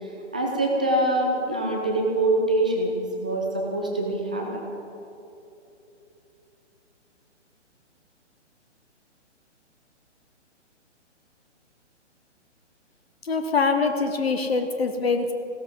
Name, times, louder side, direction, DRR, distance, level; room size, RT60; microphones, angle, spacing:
voice 1, 0.0-4.7, right 1 dB, 5° right, -1 dB, 0.4 m, -25 dB
voice 2, 13.2-15.3, left 4 dB, 55° left, 7 dB, 1.3 m, -24 dB
15.5 x 13.5 x 5.4 m, 2.9 s
figure-of-eight pair, 130°, 36 cm